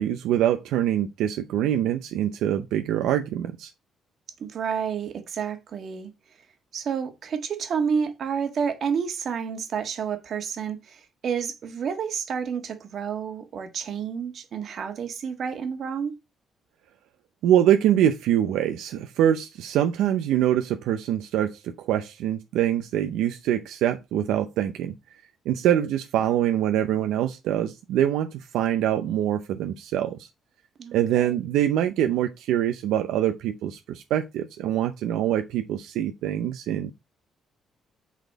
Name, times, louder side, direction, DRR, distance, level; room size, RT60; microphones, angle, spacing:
voice 1, 0.0-3.7 17.4-24.9 25.5-30.3 30.9-36.9, right 11 dB, 90° right, 0.6 m, -24 dB
voice 2, 4.4-6.4 6.7-16.1 30.8-31.4, right 6 dB, 60° right, 1.6 m, -30 dB
8.3 x 4.1 x 4.0 m
cardioid pair, 90°, 0 cm